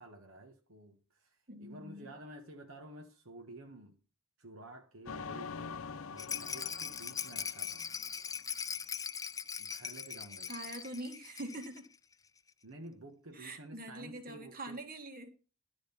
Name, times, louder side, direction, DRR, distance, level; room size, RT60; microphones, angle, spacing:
voice 1, 0.0-4.0 4.4-7.9 9.6-10.5 12.6-14.8, right 1 dB, 70° right, 1.5 m, -52 dB
voice 2, 1.5-2.1 10.5-11.9 13.3-15.3, right 1 dB, 45° right, 2.1 m, -44 dB
sound 1, 5.1-8.5, left 5 dB, 75° left, 0.6 m, -45 dB
Rattle, 6.2-11.9 12.1-12.2 12.5-12.6, left 7 dB, 15° left, 0.4 m, -40 dB
12.0 x 5.1 x 7.1 m
head